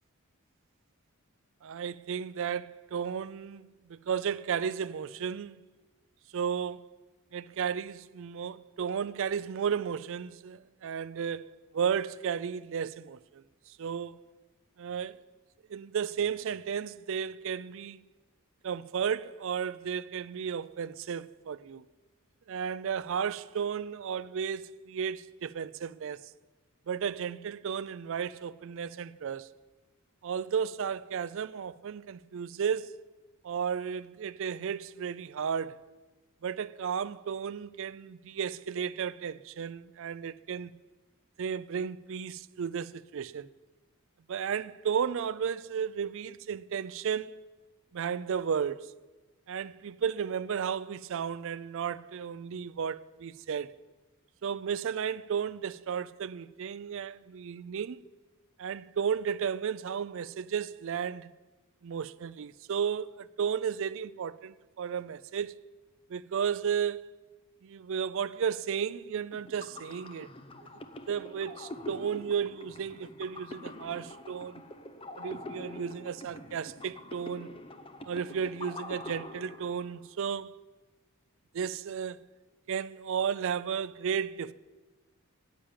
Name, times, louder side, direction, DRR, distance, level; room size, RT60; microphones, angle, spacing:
voice 1, 1.6-5.6 6.3-6.9 7.3-14.2 14.8-15.2 15.7-18.0 18.6-21.8 22.5-26.3 26.9-29.5 30.2-33.0 33.4-35.8 36.4-40.7 41.4-43.5 44.3-47.4 47.9-48.9 49.5-53.8 54.4-58.0 58.6-61.3 61.8-65.5 66.1-67.0 67.6-70.3 71.1-74.6 75.2-77.5 78.0-80.6 81.5-82.3 82.7-84.5, right 7 dB, 60° right, 0.4 m, -33 dB
sound 1, 69.3-80.1, left 2 dB, 25° left, 0.8 m, -45 dB
10.5 x 8.9 x 8.8 m
head